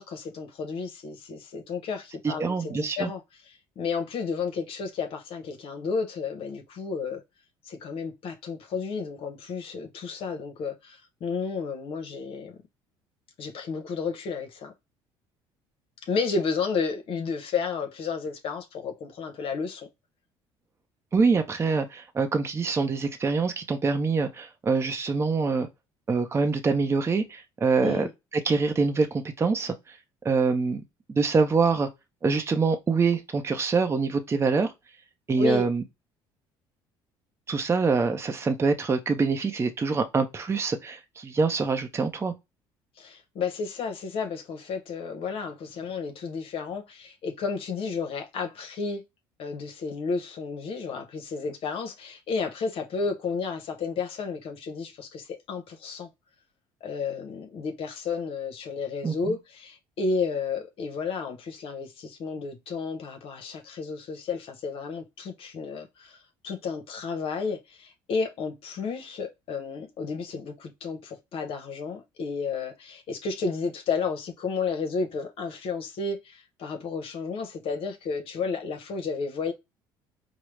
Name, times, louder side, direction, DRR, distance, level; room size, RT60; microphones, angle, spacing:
voice 1, 0.0-3.2 3.8-7.2 7.6-12.5 13.4-14.7 16.1-19.9 27.8-28.1 35.4-35.6 43.0-49.0 49.4-56.1 56.8-66.2 66.4-79.5, left 5 dB, 60° left, 0.8 m, -32 dB
voice 2, 2.2-3.1 21.1-25.7 26.1-28.1 28.3-30.0 30.2-30.8 31.1-31.9 32.2-34.7 35.3-35.8 37.5-42.3 59.0-59.3, right 4 dB, 25° right, 0.6 m, -25 dB
4.6 x 2.0 x 3.2 m
supercardioid pair, 85°, 11 cm